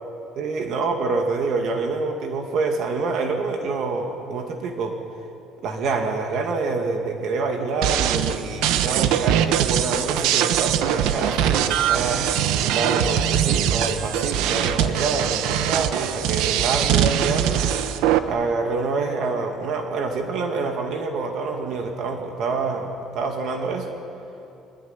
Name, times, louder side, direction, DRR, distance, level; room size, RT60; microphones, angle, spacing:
voice 1, 0.4-5.0 5.6-17.6 18.3-23.9, right 4 dB, 50° right, 3 dB, 2.3 m, -26 dB
sound 1, 7.8-18.2, right 10 dB, 85° right, 1.3 m, -22 dB
24.5 x 22.0 x 9.7 m, 2.8 s
cardioid pair, 165°, 0 cm